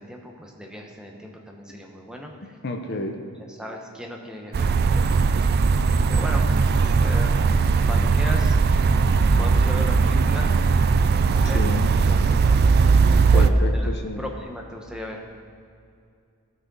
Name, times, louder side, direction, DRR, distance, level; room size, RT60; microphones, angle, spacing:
voice 1, 0.0-2.6 3.5-5.6 6.1-6.4 6.7-7.4 7.8-8.5 9.4-10.5 11.2-12.2 13.3-13.9 14.2-15.2, equal, 5° right, 0 dB, 0.9 m, -37 dB
voice 2, 2.6-3.2 11.4-12.0 13.3-14.2, left 2 dB, 50° left, 5 dB, 0.7 m, -30 dB
sound 1, 4.5-13.5, right 4 dB, 45° right, 0.3 m, -19 dB
16.0 x 6.3 x 4.0 m, 2.4 s
head